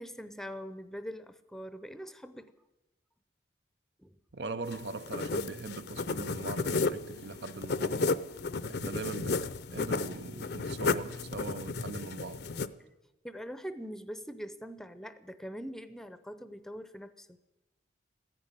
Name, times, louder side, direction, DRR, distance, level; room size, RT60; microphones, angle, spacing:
voice 1, 0.0-2.5 4.0-4.2 13.2-17.4, equal, ahead, 0.6 m, -43 dB
voice 2, 4.3-8.2 8.7-12.5, right 3 dB, 70° right, 0.7 m, -41 dB
sound 1, 4.7-12.7, left 3 dB, 65° left, 0.6 m, -33 dB
14.5 x 10.5 x 8.9 m
head